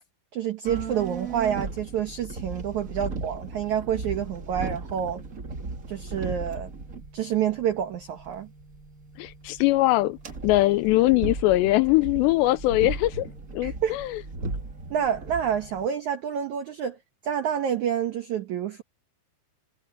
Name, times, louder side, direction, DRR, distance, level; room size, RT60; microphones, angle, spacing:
voice 1, 0.3-5.2 5.9-6.7 7.1-8.5 13.6-14.0 14.9-17.0 17.2-18.8, right 9 dB, 85° right, 1.6 m, -28 dB
sound 1, 0.6-15.9, right 3 dB, 50° right, 1.0 m, -37 dB
voice 2, 9.2-10.2 10.4-13.3 13.5-14.2, left 18 dB, 85° left, 2.6 m, -21 dB
omnidirectional pair, 5.2 m